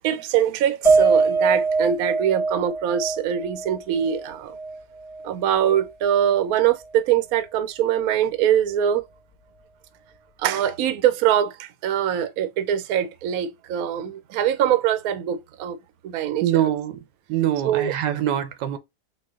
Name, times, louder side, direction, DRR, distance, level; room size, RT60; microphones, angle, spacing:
voice 1, 0.0-4.6 5.2-9.0 10.4-15.8 16.0-16.4 17.6-17.9, right 10 dB, 65° right, 1.0 m, -23 dB
Piano, 0.8-5.3 5.7-5.8 6.2-6.4, right 4 dB, 20° left, 1.1 m, -23 dB
voice 2, 16.4-17.0 17.3-18.8, right 11 dB, 90° right, 1.3 m, -23 dB
4.0 x 2.5 x 3.6 m
omnidirectional pair, 1.8 m